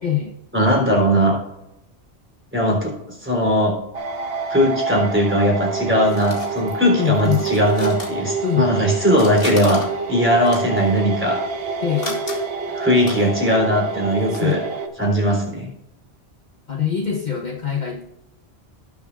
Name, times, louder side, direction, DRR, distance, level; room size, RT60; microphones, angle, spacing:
voice 1, 0.0-0.4 7.0-7.5 8.4-8.8 11.8-12.2 14.3-14.6 16.7-18.0, left 9 dB, 45° left, 0 dB, 1.2 m, -23 dB
voice 2, 0.5-1.4 2.5-3.7 4.5-9.8 10.1-11.4 12.7-14.6 15.0-15.7, equal, 10° right, -1 dB, 3.5 m, -19 dB
sound 1, 3.9-14.9, right 4 dB, 65° right, 1.3 m, -27 dB
sound 2, 5.4-8.8 9.1-14.5, left 2 dB, 60° left, 2.2 m, -38 dB
18.0 x 7.2 x 2.4 m, 0.88 s
omnidirectional pair, 1.1 m